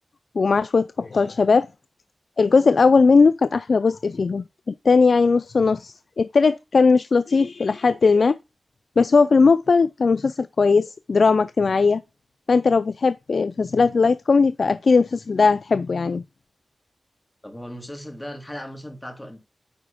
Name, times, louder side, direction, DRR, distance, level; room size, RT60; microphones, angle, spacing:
voice 1, 0.4-1.7 2.4-8.4 9.0-12.0 12.5-16.2, left 4 dB, 70° left, 0.3 m, -18 dB
voice 2, 17.4-19.4, equal, 10° left, 2.4 m, -37 dB
9.5 x 4.2 x 5.1 m
wide cardioid pair, 85°, 0 cm